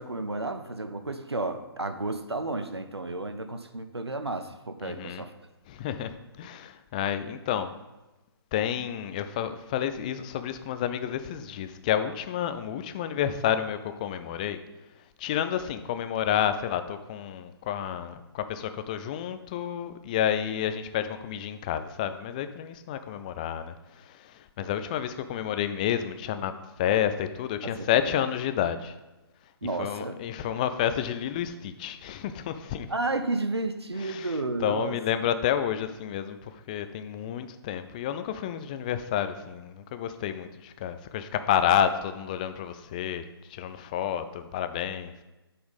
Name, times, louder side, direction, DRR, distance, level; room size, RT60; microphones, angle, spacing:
voice 1, 0.0-5.3 27.6-28.2 29.6-30.2 32.9-35.0, right 2 dB, 90° right, 9 dB, 0.7 m, -32 dB
voice 2, 4.8-5.2 5.7-7.8 8.5-14.6 15.2-29.0 29.8-32.9 34.0-45.1, left 10 dB, 20° left, 10 dB, 0.3 m, -30 dB
8.5 x 4.3 x 5.3 m, 1.1 s
figure-of-eight pair, 140°, 13 cm